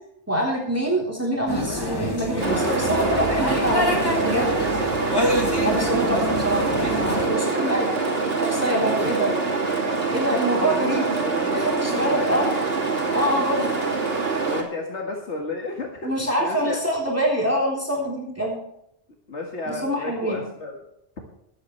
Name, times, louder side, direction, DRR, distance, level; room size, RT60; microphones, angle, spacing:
voice 1, 0.3-4.5 5.6-7.9 8.5-9.3 10.1-11.1 11.5-12.5 13.1-13.7 16.0-18.6 19.7-20.4, equal, 15° right, -3 dB, 3.5 m, -25 dB
sound 1, 1.5-7.3, equal, 20° left, 2.4 m, -26 dB
voice 2, 2.3-4.7 5.1-5.3 7.3-9.3 10.5-12.6 14.4-16.1 16.4-16.8 19.3-20.8, left 2 dB, 85° left, 1 dB, 2.1 m, -33 dB
sound 2, 2.4-14.6, right 4 dB, 60° right, 2.9 m, -25 dB
22.5 x 9.0 x 3.2 m, 0.77 s
omnidirectional pair, 1.1 m